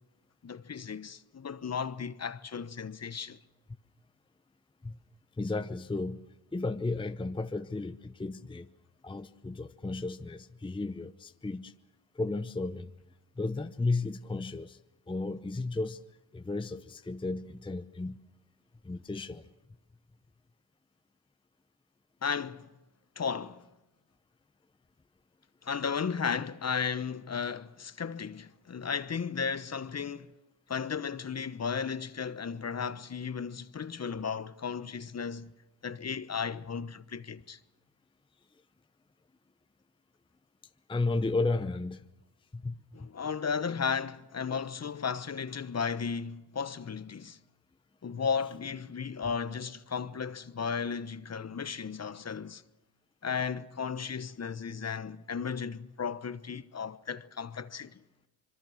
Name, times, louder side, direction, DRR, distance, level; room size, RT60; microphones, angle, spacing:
voice 1, 0.4-3.4 22.2-22.7 23.2-23.7 25.6-30.3 30.7-35.5 35.8-37.6 42.9-47.4 48.0-52.6 53.2-58.0, left 6 dB, 35° left, 1.1 m, -35 dB
voice 2, 5.4-6.3 6.5-8.7 9.0-11.7 12.1-12.9 13.4-14.8 15.1-16.0 16.3-18.2 18.8-19.5 40.9-42.0 42.5-43.1, left 3 dB, 10° left, 0.8 m, -34 dB
25.5 x 23.0 x 6.5 m
supercardioid pair, 65°, 46 cm